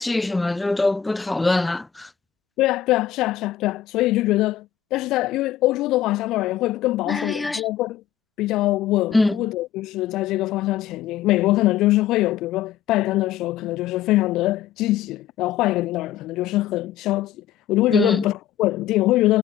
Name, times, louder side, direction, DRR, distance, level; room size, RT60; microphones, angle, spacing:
voice 1, 0.0-2.1 7.1-7.6 9.1-9.4 17.9-18.3, left 2 dB, 5° left, 2.4 m, -22 dB
voice 2, 2.6-4.6 4.9-8.0 8.4-17.3 17.7-19.4, left 17 dB, 30° left, 1.7 m, -22 dB
figure-of-eight pair, 105°, 0 cm